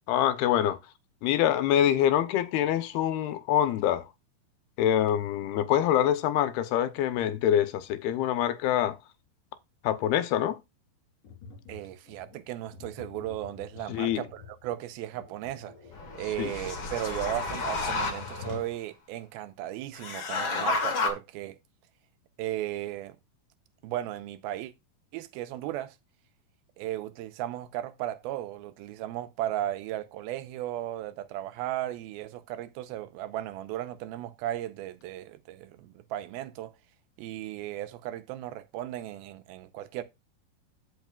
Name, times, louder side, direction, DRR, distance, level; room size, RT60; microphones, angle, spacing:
voice 1, 0.1-0.8 1.2-4.1 4.8-9.0 9.8-10.6 13.9-14.2 16.4-16.5, left 11 dB, 85° left, 2.8 m, -25 dB
Tap, 11.2-18.8, left 5 dB, 60° left, 4.5 m, -47 dB
voice 2, 11.7-15.7 16.2-21.6 22.4-23.2 23.8-24.7 25.1-26.0 26.8-36.7 37.2-40.0, right 13 dB, 85° right, 2.5 m, -36 dB
sound 1, 15.9-18.6 20.0-21.1, left 3 dB, 45° left, 1.8 m, -31 dB
15.0 x 5.6 x 2.3 m
omnidirectional pair, 4.4 m